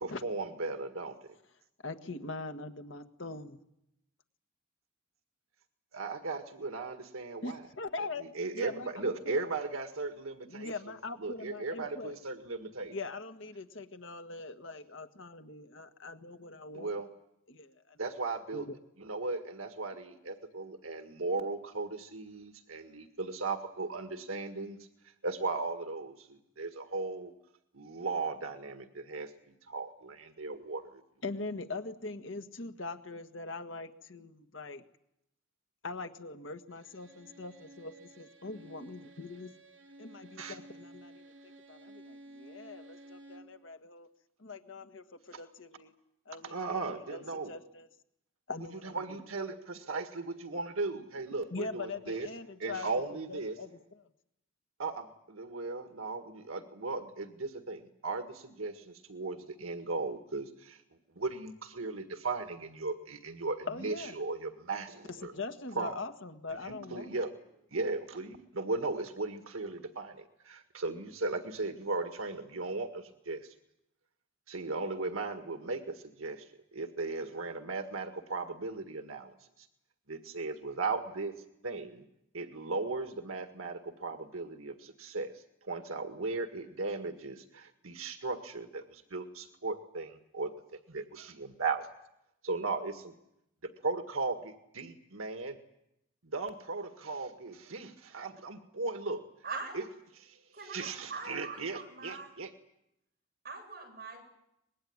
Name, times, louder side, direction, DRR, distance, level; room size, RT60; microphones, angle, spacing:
voice 1, 0.0-1.3 5.9-7.7 8.2-10.7 11.2-12.9 16.7-17.1 18.0-18.6 19.0-24.8 25.0-27.3 27.7-29.3 29.7-31.0 40.4-40.6 46.4-47.5 48.8-52.3 52.6-53.6 54.8-60.8 61.1-65.3 65.7-66.0 66.6-67.3 67.7-73.5 74.5-79.7 80.1-81.3 81.6-82.0 82.3-90.5 90.9-91.9 92.4-93.1 93.8-95.6 96.2-99.2 99.7-99.8 100.2-102.5, right 3 dB, 85° right, 6 dB, 1.8 m, -37 dB
voice 2, 1.8-3.6 7.4-8.3 8.5-9.4 10.5-12.2 12.9-16.9 17.5-18.0 18.5-18.7 31.2-34.8 35.8-39.5 40.0-41.3 41.7-44.1 44.4-45.9 46.2-47.9 48.5-49.0 51.5-52.9 53.3-54.1 63.6-64.2 65.2-67.2, left 3 dB, 65° left, 7 dB, 1.6 m, -42 dB
Bowed string instrument, 36.7-43.6, right 1 dB, 65° right, 2.6 m, -54 dB
voice 3, 99.4-99.8 100.5-102.3 103.4-104.2, right 4 dB, 45° right, 1 dB, 7.7 m, -42 dB
25.0 x 20.5 x 9.6 m, 0.82 s
head